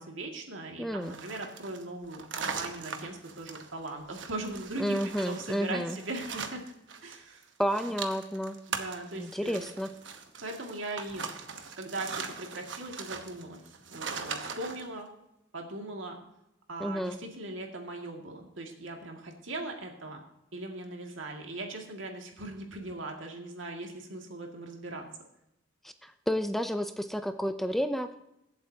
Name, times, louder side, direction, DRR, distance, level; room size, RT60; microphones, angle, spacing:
voice 1, 0.0-6.6 7.0-7.5 7.9-8.0 8.7-9.7 10.4-11.2 11.8-13.6 13.9-15.1 15.5-16.2 16.7-20.2 20.5-25.0, right 2 dB, 85° right, 1 dB, 2.1 m, -39 dB
voice 2, 0.8-1.2 4.8-6.0 7.6-8.6 9.2-9.9 16.8-17.2 26.0-28.1, equal, ahead, 8 dB, 0.5 m, -31 dB
sound 1, 1.0-7.2 7.4-14.9, right 5 dB, 70° right, 1.1 m, -40 dB
23.0 x 7.9 x 2.8 m, 0.86 s
head